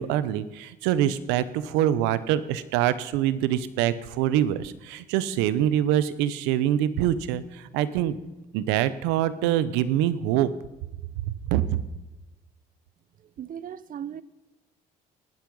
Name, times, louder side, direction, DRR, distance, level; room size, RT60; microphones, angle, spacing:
voice 1, 0.0-8.2 8.5-10.5 11.3-11.8, right 11 dB, 85° right, 0.9 m, -25 dB
voice 2, 13.2-14.2, right 9 dB, 50° right, 0.8 m, -37 dB
20.0 x 7.9 x 5.4 m
supercardioid pair, 70°, 18 cm